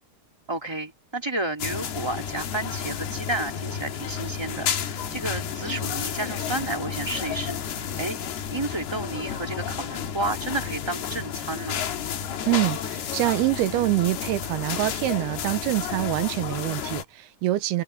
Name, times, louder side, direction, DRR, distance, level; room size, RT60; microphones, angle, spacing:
voice 1, 0.5-7.6 8.0-8.2 8.5-11.8, right 2 dB, 10° right, 2.1 m, -31 dB
sound 1, 1.6-17.0, left 8 dB, 75° left, 4.1 m, -31 dB
voice 2, 12.5-17.8, right 17 dB, 85° right, 2.9 m, -25 dB
open air
omnidirectional pair, 4.6 m